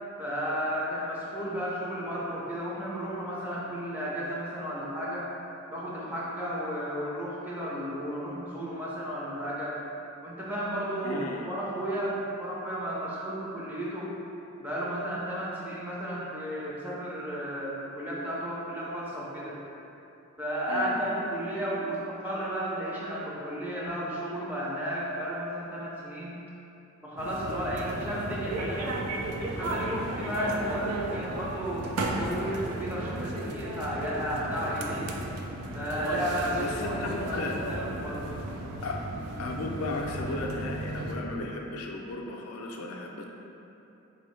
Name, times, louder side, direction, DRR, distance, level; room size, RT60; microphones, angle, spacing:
voice 1, 0.2-5.3 5.7-9.8 10.2-14.1 14.6-19.6 20.4-26.4 27.0-29.0 29.4-31.9 32.2-35.2 35.7-38.3, equal, 10° right, -6 dB, 0.5 m, -33 dB
voice 2, 11.0-11.5 20.7-21.5 23.9-24.0 36.6-37.6 38.8-39.0 39.4-43.2, left 2 dB, 75° left, 0 dB, 0.4 m, -35 dB
sound 1, 27.2-41.1, right 2 dB, 90° right, 0.4 m, -34 dB
4.6 x 2.7 x 3.1 m, 2.9 s
head